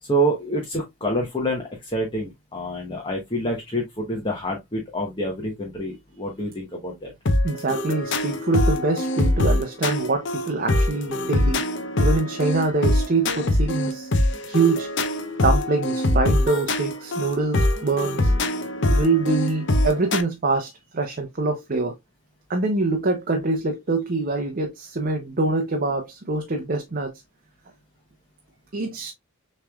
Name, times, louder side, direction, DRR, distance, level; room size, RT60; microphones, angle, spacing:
voice 1, 0.0-7.1, right 1 dB, 25° left, 1.0 m, -27 dB
sound 1, 7.3-20.2, left 1 dB, 55° left, 0.7 m, -23 dB
voice 2, 7.4-11.6 12.0-14.1 14.4-14.9 15.4-18.3 18.9-21.9 22.5-27.1 28.7-29.1, right 3 dB, 40° right, 0.7 m, -24 dB
6.6 x 3.2 x 2.3 m
head